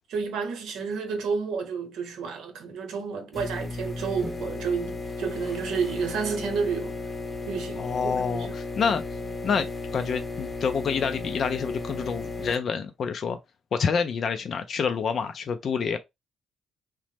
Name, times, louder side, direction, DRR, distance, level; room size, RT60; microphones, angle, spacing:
voice 1, 0.1-6.9 7.5-8.5, right 5 dB, 85° right, 0.8 m, -30 dB
sound 1, 3.3-12.5, left 3 dB, 25° left, 0.7 m, -35 dB
voice 2, 7.8-9.0 9.4-13.4 13.7-16.0, left 6 dB, 55° left, 0.3 m, -27 dB
3.0 x 2.0 x 3.2 m
cardioid pair, 90°, 0 cm